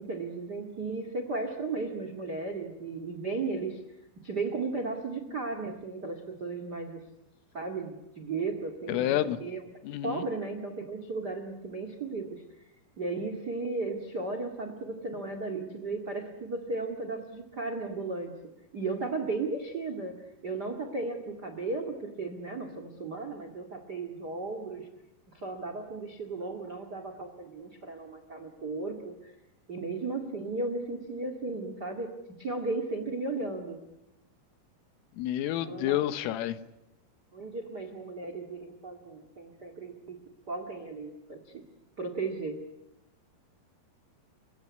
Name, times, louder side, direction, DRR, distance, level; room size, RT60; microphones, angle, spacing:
voice 1, 0.0-3.8 4.2-7.0 7.5-9.6 10.0-12.4 13.0-18.3 18.7-24.9 25.3-29.3 29.7-33.8 35.6-36.1 37.3-40.2 40.5-41.6 42.0-42.6, right 3 dB, 85° right, 8 dB, 0.9 m, -35 dB
voice 2, 8.9-9.4 9.8-10.2 35.2-36.6, left 13 dB, 80° left, 13 dB, 3.7 m, -29 dB
29.5 x 17.0 x 9.6 m, 0.90 s
omnidirectional pair, 5.9 m